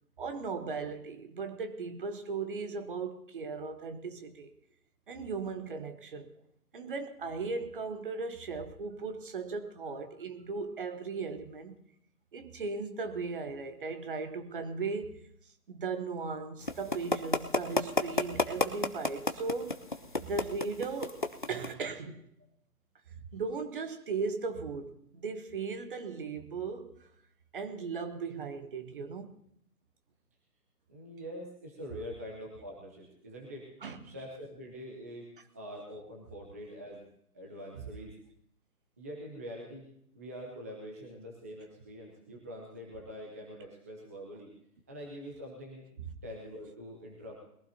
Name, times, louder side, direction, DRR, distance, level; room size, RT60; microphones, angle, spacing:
voice 1, 0.2-4.5 5.1-6.3 6.7-11.8 12.3-15.2 15.7-19.8 20.2-21.2 21.5-22.2 23.3-27.0 27.5-29.3 33.8-34.1 37.7-37.9, right 4 dB, 35° right, 1.1 m, -37 dB
sound 1, 16.7-21.7, left 2 dB, 35° left, 0.4 m, -30 dB
voice 2, 30.9-33.7 34.0-37.1 37.3-38.2 39.0-39.9 40.1-44.5 44.9-45.9 46.2-47.4, equal, 10° right, 0.7 m, -44 dB
21.0 x 15.0 x 2.8 m
figure-of-eight pair, 150°, 47 cm